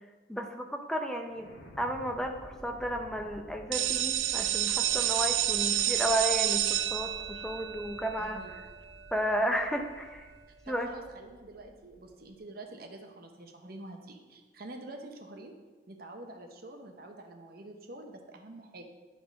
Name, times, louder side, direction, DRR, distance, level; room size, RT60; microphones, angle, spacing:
voice 1, 0.3-1.5 1.8-8.4 9.1-10.3 10.7-10.9, equal, 5° left, 4 dB, 0.5 m, -33 dB
sound 1, 1.3-12.4, equal, 70° left, 1.5 m, -52 dB
sound 2, 3.7-9.4, right 13 dB, 85° right, 0.4 m, -30 dB
voice 2, 8.2-8.5 10.7-15.5 15.9-18.8, right 2 dB, 50° right, 3 dB, 0.9 m, -47 dB
10.5 x 3.8 x 5.2 m, 1.3 s
head